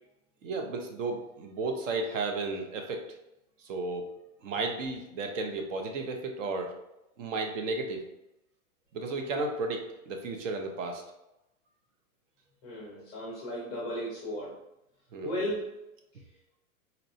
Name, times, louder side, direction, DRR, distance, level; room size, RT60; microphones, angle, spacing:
voice 1, 0.4-3.1 3.6-4.1 4.4-6.7 7.2-8.0 8.9-11.0 13.0-13.1 15.1-15.5, right 3 dB, 60° right, 4 dB, 0.7 m, -33 dB
voice 2, 12.6-14.6 15.2-15.8, equal, 15° left, -5 dB, 0.4 m, -35 dB
4.1 x 2.2 x 2.6 m, 0.89 s
hypercardioid pair, 150°, 43 cm